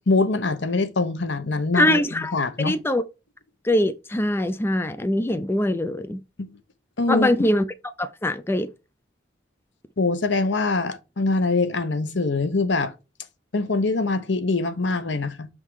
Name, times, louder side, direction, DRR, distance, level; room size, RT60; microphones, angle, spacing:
voice 1, 0.0-2.8 6.4-6.6 7.0-7.3 10.0-12.9 13.5-15.5, left 3 dB, 70° left, 0.9 m, -24 dB
voice 2, 1.7-3.0 3.6-6.2 7.1-7.6 8.0-8.7, left 1 dB, 10° left, 0.4 m, -22 dB
6.5 x 3.6 x 4.7 m
head